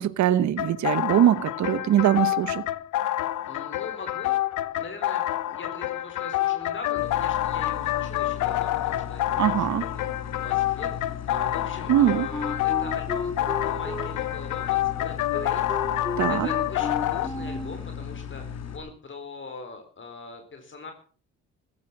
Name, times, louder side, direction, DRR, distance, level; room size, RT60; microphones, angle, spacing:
voice 1, 0.0-2.6 9.4-9.8 11.9-12.3 16.2-16.5, right 11 dB, 65° right, 1.0 m, -22 dB
sound 1, 0.6-17.3, left 14 dB, 85° left, 1.1 m, -28 dB
voice 2, 3.5-4.4 4.7-10.1 10.3-15.6 16.3-20.9, left 3 dB, 40° left, 4.2 m, -41 dB
sound 2, 7.0-18.8, left 7 dB, 60° left, 3.3 m, -37 dB
Wind instrument woodwind instrument, 11.9-17.8, left 2 dB, 15° left, 3.1 m, -34 dB
15.5 x 13.5 x 6.1 m
cardioid pair, 90°, 30 cm